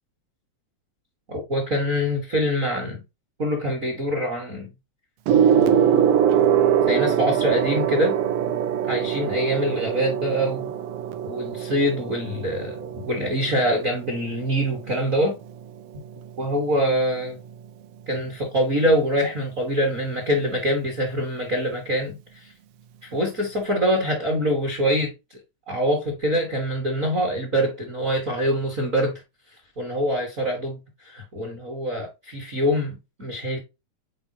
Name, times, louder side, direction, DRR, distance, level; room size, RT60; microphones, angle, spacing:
voice 1, 1.3-3.0 3.4-4.7 6.9-8.2 8.9-10.7 11.2-15.4 16.4-17.4 18.1-22.5 23.0-25.4 25.7-29.2 29.8-33.6, equal, 45° right, 1.0 m, -24 dB
Gong, 5.3-15.0 16.0-16.2, right 9 dB, 75° right, 1.4 m, -23 dB
7.7 x 4.4 x 2.8 m
omnidirectional pair, 3.4 m